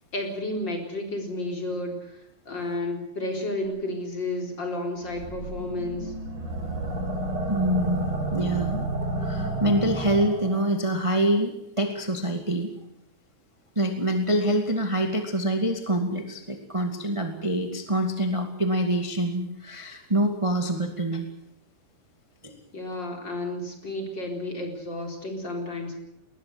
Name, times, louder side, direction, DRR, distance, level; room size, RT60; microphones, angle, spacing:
voice 1, 0.1-2.2 2.5-6.1 22.7-25.9, left 1 dB, 25° left, 3 dB, 4.4 m, -32 dB
sound 1, 5.1-10.7, right 1 dB, 60° right, 7.5 m, -30 dB
voice 2, 7.4-8.9 9.2-12.7 13.7-21.3 22.4-22.6, right 1 dB, 15° right, 4 dB, 1.1 m, -26 dB
21.0 x 20.5 x 7.9 m, 0.80 s
omnidirectional pair, 4.7 m